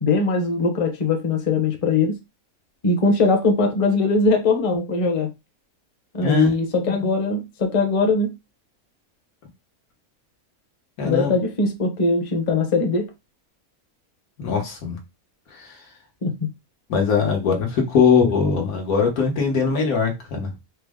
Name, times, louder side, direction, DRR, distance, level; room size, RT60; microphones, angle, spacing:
voice 1, 0.0-2.2 2.8-5.3 6.1-8.3 11.0-13.1 16.2-16.3, left 3 dB, 35° left, 0.6 m, -21 dB
voice 2, 11.0-11.3 14.4-15.0 15.5-15.8 16.9-20.5, left 5 dB, 80° left, 1.5 m, -21 dB
4.5 x 2.0 x 3.5 m
omnidirectional pair, 1.5 m